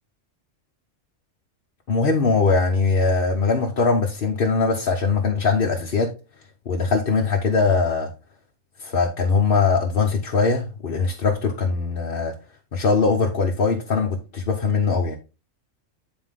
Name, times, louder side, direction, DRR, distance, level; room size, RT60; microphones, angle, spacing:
voice 1, 1.9-6.1 6.7-8.1 8.8-12.3 12.7-15.2, left 4 dB, 50° left, 1 dB, 1.1 m, -21 dB
9.5 x 4.4 x 3.7 m, 0.30 s
omnidirectional pair, 1.3 m